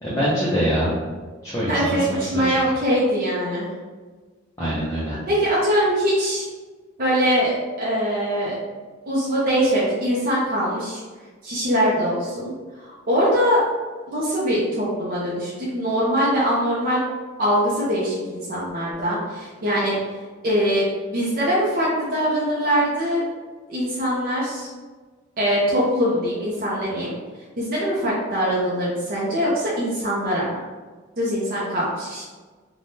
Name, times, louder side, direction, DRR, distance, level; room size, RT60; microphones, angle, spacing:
voice 1, 0.0-0.9 1.4-2.6 4.6-5.2, equal, 15° left, -9 dB, 0.5 m, -24 dB
voice 2, 1.7-3.7 5.3-6.4 7.0-8.5 9.1-11.0 11.4-13.6 14.1-17.0 17.4-20.0 20.4-23.2 23.7-24.7 25.4-27.1 27.6-30.6 31.2-32.2, equal, 45° right, -7 dB, 0.6 m, -22 dB
3.3 x 2.2 x 2.6 m, 1.4 s
head